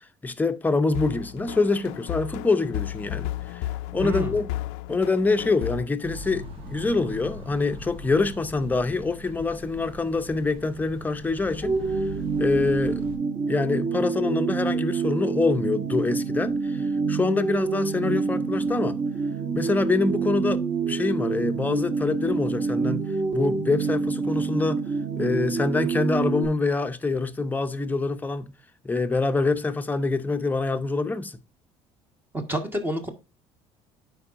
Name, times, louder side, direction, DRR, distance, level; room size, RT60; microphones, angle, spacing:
voice 1, 0.2-3.6 3.9-4.5 4.9-12.0 12.4-13.0 13.5-19.0 19.5-24.8 25.2-28.5 28.8-31.4, left 3 dB, 15° left, 0.7 m, -25 dB
sound 1, 0.9-5.9, left 15 dB, 90° left, 0.4 m, -33 dB
voice 2, 4.0-4.4 32.3-33.1, right 1 dB, 20° right, 1.5 m, -29 dB
sound 2, 6.0-13.2, left 2 dB, 55° right, 2.3 m, -41 dB
sound 3, 11.6-26.4, right 4 dB, 35° right, 1.6 m, -27 dB
11.0 x 4.8 x 2.5 m
cardioid pair, 105°, 12 cm